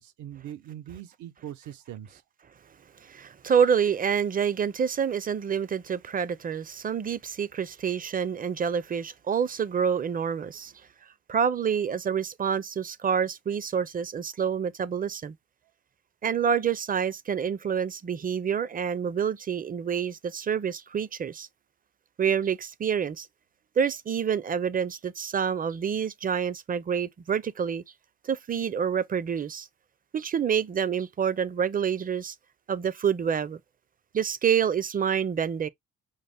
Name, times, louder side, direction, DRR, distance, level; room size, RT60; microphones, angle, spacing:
voice 1, 0.0-2.2, right 11 dB, 75° right, 0.8 m, -41 dB
voice 2, 3.0-10.7 11.3-15.3 16.2-21.5 22.2-23.3 23.8-27.8 28.2-29.7 30.1-32.3 32.7-33.6 34.1-35.7, right 7 dB, 30° right, 0.5 m, -27 dB
5.6 x 2.1 x 3.4 m
cardioid pair, 90°, 30 cm